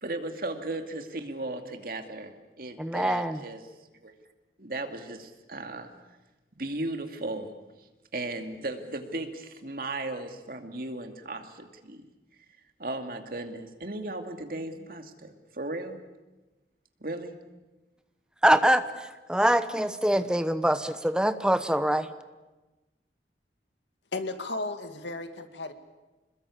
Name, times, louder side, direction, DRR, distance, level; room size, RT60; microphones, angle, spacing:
voice 1, 0.0-3.6 4.0-4.1 4.6-5.9 6.6-7.5 8.1-12.0 12.8-16.0 17.0-17.3, right 2 dB, 55° right, 6 dB, 2.4 m, -36 dB
voice 2, 2.8-3.4 18.4-18.8 19.3-22.1, right 1 dB, 5° right, 11 dB, 1.0 m, -24 dB
voice 3, 24.1-25.7, left 2 dB, 85° left, 8 dB, 2.2 m, -34 dB
27.0 x 21.0 x 8.6 m, 1.1 s
head